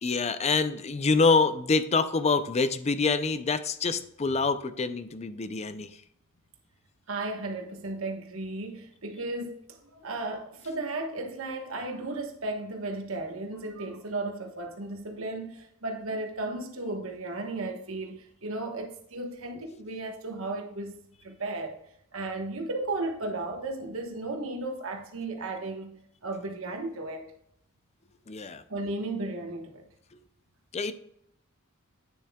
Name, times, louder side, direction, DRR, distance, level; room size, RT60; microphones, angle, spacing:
voice 1, 0.0-6.0 28.3-28.6 30.1-30.2 30.7-30.9, left 4 dB, 30° left, 0.5 m, -26 dB
voice 2, 7.1-21.7 22.1-27.3 28.7-29.8, right 2 dB, 65° right, 1.3 m, -35 dB
9.3 x 6.9 x 2.3 m
head